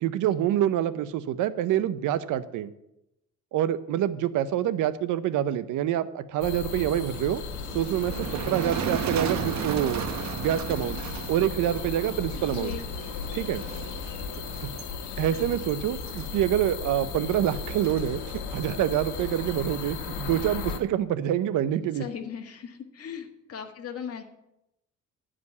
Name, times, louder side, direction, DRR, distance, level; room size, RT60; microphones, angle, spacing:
voice 1, 0.0-2.7 3.5-7.4 7.7-10.0 10.3-11.0 11.3-12.7 13.3-13.6 15.2-22.0, right 11 dB, 85° right, 14 dB, 0.7 m, -26 dB
sound 1, 6.4-20.8, left 5 dB, 90° left, 1.3 m, -36 dB
Motor vehicle (road), 7.5-20.1, right 7 dB, 65° right, 1.1 m, -37 dB
voice 2, 12.3-12.8 21.9-24.2, left 7 dB, 50° left, 3 dB, 1.6 m, -38 dB
11.0 x 5.1 x 8.2 m, 0.85 s
cardioid pair, 90°, 30 cm